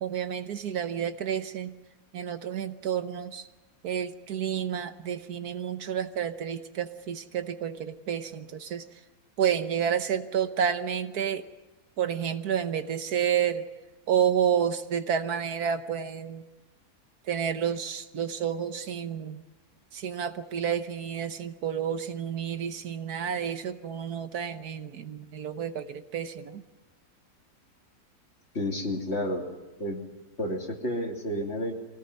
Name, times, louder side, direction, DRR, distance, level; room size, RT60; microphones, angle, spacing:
voice 1, 0.0-1.7 2.1-3.5 3.8-8.9 9.4-11.4 12.0-13.7 14.1-16.4 17.3-19.4 19.9-26.6, right 8 dB, 70° right, 10 dB, 1.5 m, -30 dB
voice 2, 28.5-29.5 29.8-30.1 30.4-31.7, left 1 dB, 40° left, 1 dB, 3.1 m, -30 dB
24.0 x 18.0 x 9.7 m, 1.1 s
omnidirectional pair, 1.7 m